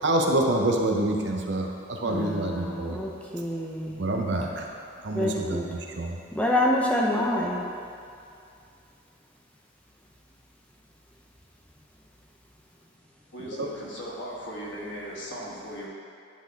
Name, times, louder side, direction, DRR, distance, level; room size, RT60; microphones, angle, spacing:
voice 1, 0.0-3.0 4.0-4.7 5.0-5.6 6.0-6.2 13.4-13.7, right 1 dB, 55° right, 1 dB, 0.7 m, -26 dB
voice 2, 2.0-4.0 5.1-5.7 6.3-7.6, left 1 dB, 5° left, -2 dB, 0.5 m, -27 dB
voice 3, 13.3-15.9, equal, 55° left, -4 dB, 1.3 m, -37 dB
10.5 x 3.9 x 3.5 m, 2.4 s
head